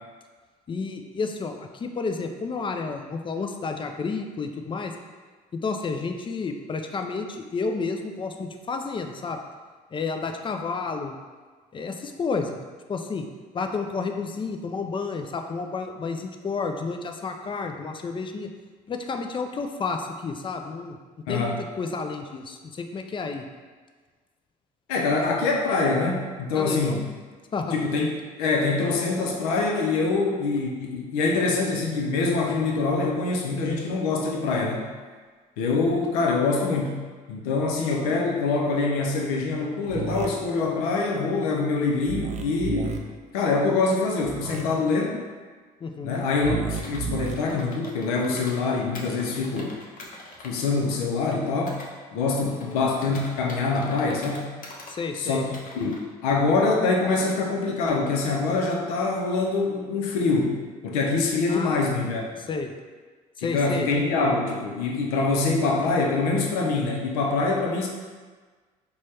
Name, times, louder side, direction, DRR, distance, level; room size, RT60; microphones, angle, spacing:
voice 1, 0.7-4.9 5.5-9.4 9.9-11.2 11.7-12.6 12.9-13.3 13.5-18.5 18.9-21.0 21.3-23.5 26.5-27.1 27.5-27.8 45.8-46.2 52.5-52.8 54.9-55.4 61.5-61.8 62.5-62.7 63.4-63.9, left 4 dB, 25° left, 5 dB, 0.4 m, -31 dB
voice 2, 24.9-27.0 27.7-34.9 35.6-37.0 37.3-43.0 43.3-45.2 46.0-49.7 50.4-51.8 52.1-54.6 55.1-56.0 56.2-62.3 63.4-67.9, left 3 dB, 85° left, 0 dB, 0.6 m, -25 dB
sound 1, 39.9-40.3 42.0-43.0 44.2-44.6 46.4-47.3, right 5 dB, 40° right, 0.5 m, -31 dB
Computer keyboard, 46.8-48.6 48.9-51.9 52.3-54.9 55.3-56.0, left 2 dB, 50° left, 0.8 m, -44 dB
4.0 x 2.2 x 3.2 m, 1.4 s
hypercardioid pair, 60°, 19 cm